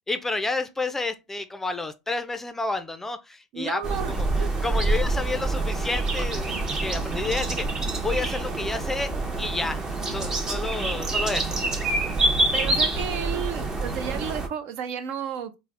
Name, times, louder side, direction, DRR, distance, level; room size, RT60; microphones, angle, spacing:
voice 1, 0.1-7.7 8.0-9.1 9.4-9.8 10.1-11.6, left 3 dB, 10° left, 0.4 m, -30 dB
voice 2, 3.5-4.5 12.5-15.5, right 8 dB, 60° right, 0.5 m, -32 dB
sound 1, 3.8-14.5, right 2 dB, 25° right, 0.7 m, -26 dB
3.3 x 2.1 x 3.2 m
hypercardioid pair, 85°, 3 cm